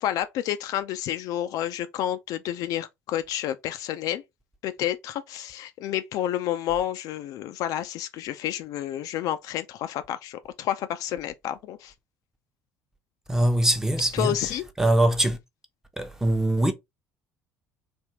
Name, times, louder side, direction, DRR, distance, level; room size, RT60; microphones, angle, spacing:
voice 1, 0.0-4.2 4.6-11.9 14.1-14.6, left 11 dB, 50° left, 0.4 m, -30 dB
voice 2, 13.3-14.3 14.8-15.4 16.0-16.7, right 1 dB, 5° right, 0.7 m, -22 dB
3.4 x 2.6 x 2.9 m
figure-of-eight pair, 55°, 8 cm